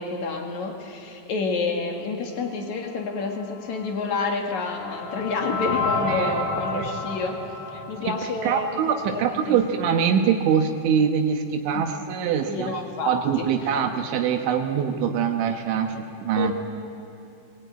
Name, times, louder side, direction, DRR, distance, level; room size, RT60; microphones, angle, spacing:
voice 1, 0.0-7.4 7.9-9.6 11.7-11.8 12.5-13.5 16.4-16.5, left 4 dB, 55° left, 2 dB, 2.3 m, -29 dB
sound 1, 3.8-8.9, left 3 dB, 30° left, 3.8 m, -30 dB
voice 2, 6.1-6.4 6.7-6.9 8.0-8.2 8.4-15.9 16.2-16.5, right 7 dB, 75° right, 5 dB, 3.4 m, -24 dB
21.5 x 20.5 x 9.3 m, 2.6 s
omnidirectional pair, 5.6 m